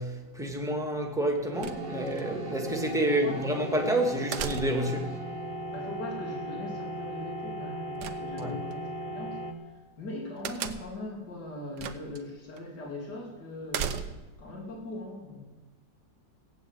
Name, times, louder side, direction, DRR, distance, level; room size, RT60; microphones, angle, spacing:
voice 1, 0.0-5.1 8.4-8.5, right 1 dB, ahead, 1.8 m, -29 dB
sound 1, 1.5-9.5, right 1 dB, 35° right, 1.4 m, -37 dB
sound 2, 1.6-2.2 4.3-5.0 8.0-8.8 10.4-11.1 11.8-12.2 12.6-12.7 13.7-14.4, right 7 dB, 70° right, 1.4 m, -35 dB
voice 2, 3.0-3.5 5.7-9.4 10.0-15.4, left 2 dB, 60° left, 3.6 m, -40 dB
16.0 x 9.1 x 8.0 m
omnidirectional pair, 2.0 m